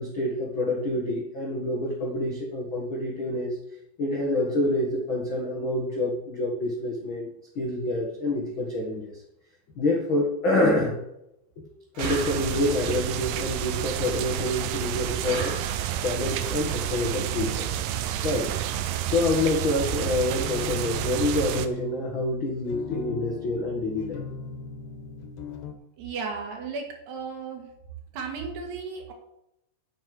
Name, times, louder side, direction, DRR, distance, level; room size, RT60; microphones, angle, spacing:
voice 1, 0.0-3.6 4.0-7.3 7.5-9.1 9.8-11.0 11.6-11.7 12.0-15.5 16.0-17.7 18.2-18.5 19.1-24.2, left 1 dB, 55° left, -2 dB, 1.3 m, -27 dB
sound 1, 11.9-12.9 15.2-16.2, right 3 dB, 50° right, 2.7 m, -37 dB
sound 2, 12.0-21.7, right 11 dB, 90° right, 2.0 m, -30 dB
sound 3, 20.4-25.7, left 6 dB, 85° left, 3.6 m, -39 dB
voice 2, 26.0-27.7 28.1-29.1, right 5 dB, 70° right, 2 dB, 3.9 m, -34 dB
8.8 x 7.7 x 7.8 m, 0.83 s
omnidirectional pair, 5.0 m